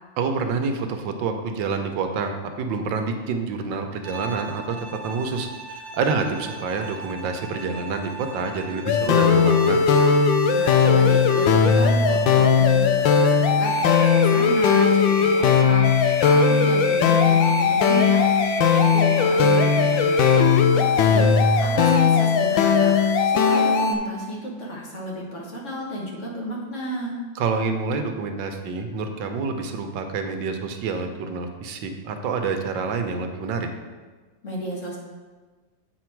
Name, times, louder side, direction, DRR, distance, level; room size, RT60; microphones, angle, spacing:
voice 1, 0.2-4.8 5.0-9.8 27.3-33.7, right 4 dB, 80° right, 5 dB, 1.4 m, -27 dB
Bowed string instrument, 4.0-12.4, right 3 dB, 60° right, 1.4 m, -39 dB
sound 1, 8.9-23.9, left 5 dB, 90° left, 1.4 m, -18 dB
voice 2, 10.5-27.2 34.4-35.0, equal, 45° left, -3 dB, 1.6 m, -33 dB
sound 2, 13.6-20.6, left 3 dB, 60° left, 1.3 m, -34 dB
8.4 x 4.9 x 4.5 m, 1.4 s
omnidirectional pair, 2.0 m